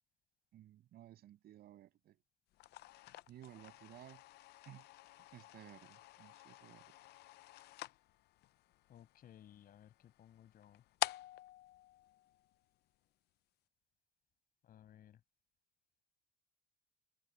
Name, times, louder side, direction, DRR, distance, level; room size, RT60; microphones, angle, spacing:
voice 1, 0.5-2.2 3.3-4.2 4.7-4.9 5.3-6.9, right 13 dB, 70° right, 7.1 m, -57 dB
sound 1, 2.5-12.9, left 16 dB, 75° left, 0.6 m, -48 dB
voice 2, 8.9-10.8 14.6-15.2, left 10 dB, 60° left, 6.0 m, -60 dB
cardioid pair, 110°, 17 cm